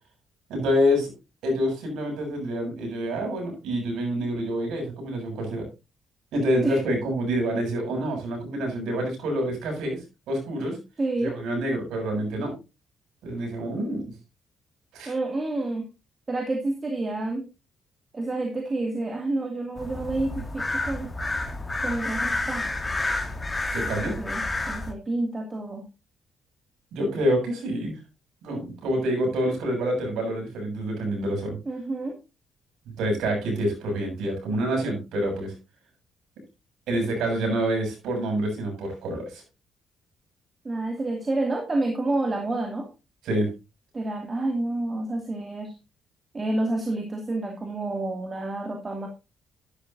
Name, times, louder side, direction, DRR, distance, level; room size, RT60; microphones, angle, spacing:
voice 1, 0.5-1.1 1.4-5.6 6.3-10.0 10.3-10.8 11.2-12.5 13.2-14.0 14.9-15.1 23.7-24.1 26.9-28.0 28.4-31.6 32.9-35.5 36.9-39.4 43.2-43.5, equal, 85° right, 1 dB, 7.0 m, -27 dB
voice 2, 11.0-11.4 15.1-15.9 16.3-17.5 18.1-21.1 21.8-22.7 23.8-25.9 31.7-32.2 40.6-42.9 43.9-45.7 46.3-49.1, right 2 dB, 30° right, 3 dB, 2.5 m, -29 dB
sound 1, 19.8-24.9, left 2 dB, 20° left, 2.2 m, -30 dB
11.5 x 11.5 x 2.7 m, 0.27 s
cardioid pair, 90°, 0 cm